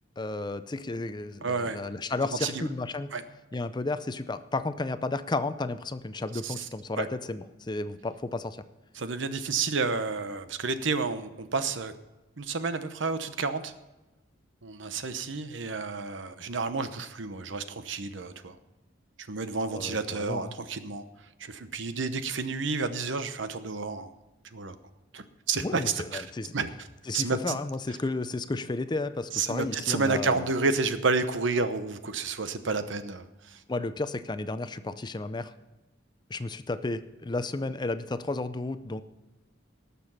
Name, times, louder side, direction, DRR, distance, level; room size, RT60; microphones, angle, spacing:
voice 1, 0.2-3.1 3.5-8.6 19.7-20.5 25.6-26.5 27.1-30.4 33.7-35.5 36.3-39.0, left 2 dB, 25° left, 12 dB, 0.5 m, -33 dB
voice 2, 1.4-1.8 2.4-2.6 3.1-3.2 6.4-6.7 7.0-7.1 8.9-11.9 12.4-13.7 14.6-18.6 19.2-21.0 21.4-24.1 24.5-24.8 25.1-25.8 26.1-26.3 26.5-26.9 27.1-27.6 29.3-33.6, right 4 dB, 70° right, 11 dB, 0.9 m, -30 dB
18.5 x 6.9 x 5.7 m, 1.1 s
head